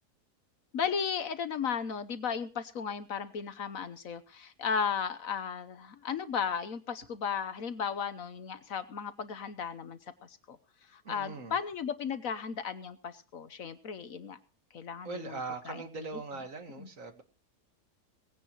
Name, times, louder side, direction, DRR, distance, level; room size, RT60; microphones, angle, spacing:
voice 1, 0.7-10.6 10.9-14.4 14.7-15.4 15.7-15.9 16.8-16.9, left 6 dB, 60° left, 12 dB, 1.3 m, -35 dB
voice 2, 11.0-11.6 15.0-17.2, right 4 dB, 55° right, 7 dB, 2.0 m, -40 dB
19.5 x 16.5 x 3.0 m, 0.32 s
omnidirectional pair, 1.7 m